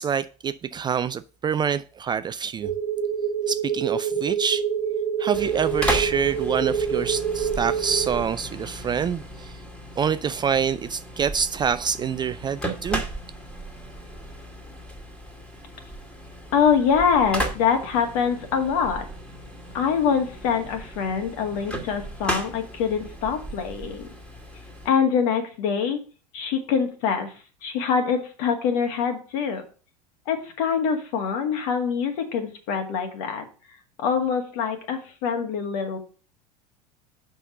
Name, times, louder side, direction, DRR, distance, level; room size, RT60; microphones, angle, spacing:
voice 1, 0.0-2.7 3.5-4.6 5.2-9.6 10.0-13.0, right 7 dB, 20° right, 0.4 m, -26 dB
sound 1, 2.6-8.2, right 7 dB, 75° right, 1.0 m, -26 dB
sound 2, 5.3-24.9, right 1 dB, 5° left, 2.0 m, -35 dB
voice 2, 16.5-19.0 19.7-24.1 24.9-26.0 26.3-27.3 27.6-29.6 30.3-33.4 34.0-36.0, left 6 dB, 60° left, 2.0 m, -24 dB
6.3 x 5.5 x 6.5 m
figure-of-eight pair, 75°, 21 cm